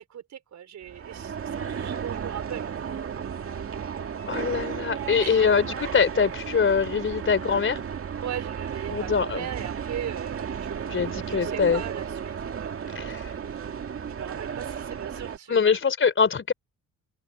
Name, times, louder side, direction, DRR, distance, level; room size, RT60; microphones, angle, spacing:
voice 1, 0.0-2.9 5.2-5.5 8.2-13.7 14.1-15.6, right 10 dB, 65° right, 5.6 m, -39 dB
sound 1, 0.8-15.4, right 7 dB, 45° right, 2.1 m, -34 dB
voice 2, 4.3-7.8 8.9-9.4 10.8-11.8 13.0-13.2 15.5-16.5, left 6 dB, 40° left, 3.7 m, -23 dB
open air
cardioid pair, 90°, 30 cm